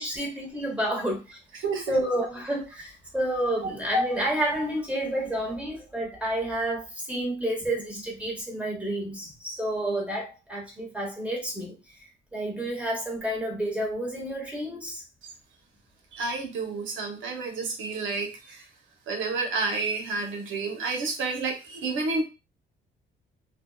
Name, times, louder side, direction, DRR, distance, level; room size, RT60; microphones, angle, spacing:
voice 1, 0.0-11.8 12.3-15.0, right 1 dB, 5° right, 1.0 m, -30 dB
voice 2, 16.1-18.6 19.1-22.2, right 3 dB, 75° right, 0.8 m, -30 dB
2.6 x 2.1 x 2.2 m
cardioid pair, 90°, 20 cm